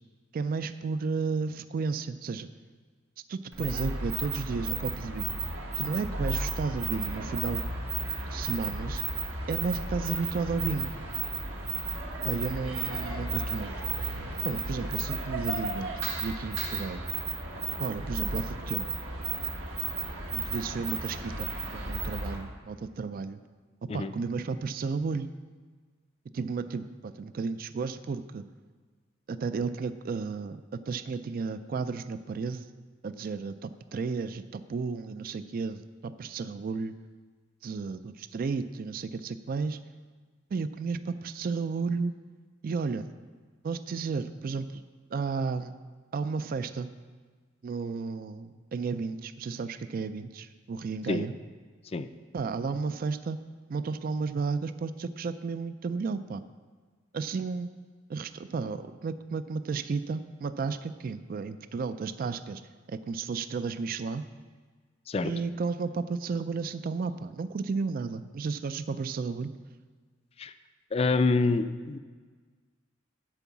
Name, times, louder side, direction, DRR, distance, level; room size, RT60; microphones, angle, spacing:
voice 1, 0.3-2.5 3.3-5.4 5.8-7.6 8.3-9.0 9.5-10.9 12.2-13.7 14.4-17.0 17.8-18.9 20.3-23.4 23.9-25.3 26.3-28.4 29.3-32.6 33.0-36.9 37.6-39.8 40.5-42.1 42.6-43.1 43.6-44.8 45.1-45.7 46.1-46.9 47.6-51.3 52.3-53.4 53.7-56.4 57.1-57.7 58.1-62.6 62.9-64.2 65.2-69.5, right 4 dB, 45° right, 12 dB, 0.3 m, -33 dB
sound 1, 3.5-22.4, right 3 dB, 75° right, 1.5 m, -33 dB
voice 2, 70.9-72.0, left 3 dB, 30° left, 12 dB, 0.4 m, -26 dB
10.5 x 4.6 x 7.1 m, 1.5 s
head